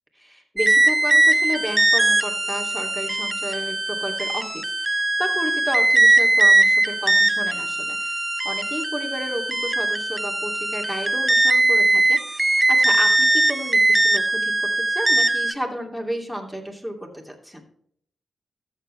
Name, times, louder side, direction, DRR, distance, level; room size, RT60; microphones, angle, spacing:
voice 1, 0.2-17.6, equal, 5° left, 2 dB, 2.7 m, -32 dB
sound 1, 0.6-15.5, right 2 dB, 20° right, 0.5 m, -20 dB
13.0 x 7.5 x 3.3 m, 0.66 s
cardioid pair, 65°, 0 cm